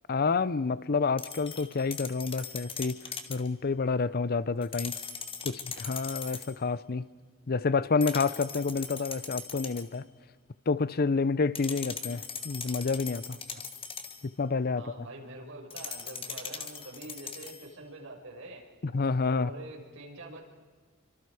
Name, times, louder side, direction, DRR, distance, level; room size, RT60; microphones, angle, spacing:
voice 1, 0.1-3.0 3.3-5.0 5.4-7.1 7.5-10.0 10.7-13.4 14.2-15.1 18.8-19.5, left 4 dB, 45° left, 0.6 m, -29 dB
sound 1, 1.2-3.5 4.6-6.6 8.0-10.0 11.5-14.3 15.7-17.7, left 6 dB, 25° left, 1.7 m, -40 dB
voice 2, 14.8-18.6 19.2-20.4, right 2 dB, 65° right, 5.7 m, -45 dB
29.0 x 25.0 x 4.9 m
head